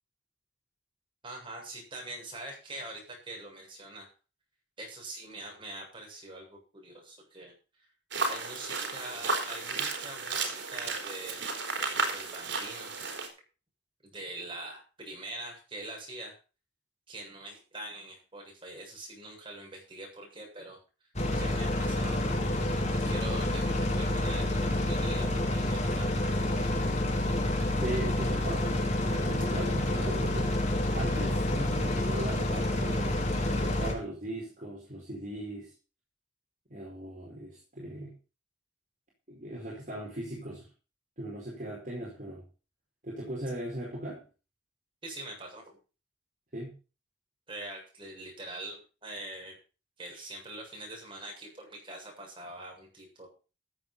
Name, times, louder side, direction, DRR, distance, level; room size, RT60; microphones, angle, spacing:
voice 1, 1.2-4.1 4.8-7.5 8.3-11.4 11.8-12.9 14.0-16.4 17.1-20.8 21.4-22.3 23.0-26.1 45.0-45.6 47.5-49.6 50.0-53.3, right 1 dB, 30° right, 0 dB, 7.5 m, -44 dB
sound 1, 8.1-13.3, right 3 dB, 80° right, 3.8 m, -33 dB
sound 2, 21.2-33.9, left 1 dB, 40° left, 3.6 m, -28 dB
voice 2, 27.8-28.8 29.0-30.5 30.9-35.7 36.7-38.1 39.3-40.7 41.2-42.4 43.0-44.2 46.5-46.7, right 1 dB, 45° right, -4 dB, 4.7 m, -38 dB
14.5 x 8.0 x 5.6 m, 0.34 s
head